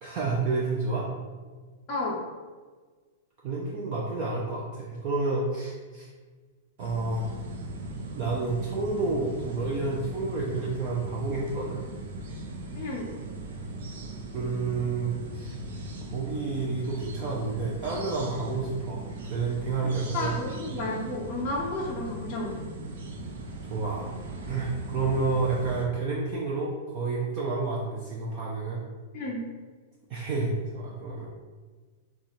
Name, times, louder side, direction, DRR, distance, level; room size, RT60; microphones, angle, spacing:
voice 1, 0.0-1.1 3.4-6.1 6.8-7.3 8.1-11.8 14.3-15.6 16.1-19.0 19.3-20.3 23.7-24.1 24.5-28.8 30.1-31.3, right 3 dB, 30° right, -3 dB, 0.5 m, -30 dB
sound 1, 6.8-25.9, right 2 dB, 85° right, 0.8 m, -39 dB
voice 2, 12.7-13.1 19.8-22.6 29.1-29.4, left 2 dB, 20° left, -6 dB, 0.6 m, -32 dB
6.8 x 2.4 x 3.0 m, 1.4 s
supercardioid pair, 175°, 0 cm